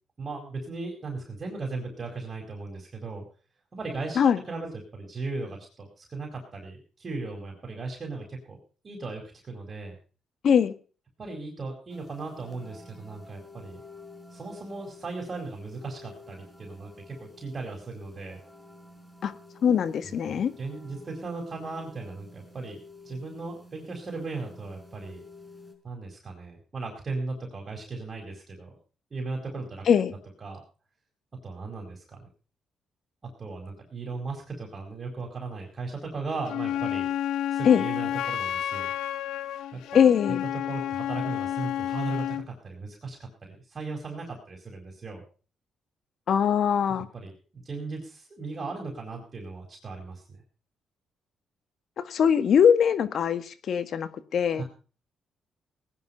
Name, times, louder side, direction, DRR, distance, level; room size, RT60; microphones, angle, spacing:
voice 1, 0.2-3.2 3.7-4.2 4.5-8.6 8.8-10.0 11.2-13.8 14.3-18.4 20.0-22.8 23.0-25.2 25.8-28.7 29.1-29.8 30.4-30.6 31.4-32.3 33.2-37.1 37.5-38.9 39.7-40.3 40.6-45.2 47.1-50.4 54.5-54.6, right 3 dB, 35° right, 0 dB, 4.6 m, -37 dB
sound 1, 11.9-25.7, left 2 dB, 10° left, 5.2 m, -50 dB
voice 2, 19.6-20.5 29.9-30.1 37.6-37.8 39.9-40.4 46.3-47.1 52.0-54.6, left 8 dB, 60° left, 12 dB, 1.5 m, -22 dB
Wind instrument woodwind instrument, 36.5-42.5, left 11 dB, 90° left, 0.8 m, -30 dB
18.5 x 10.5 x 5.5 m, 0.39 s
cardioid pair, 90°, 0 cm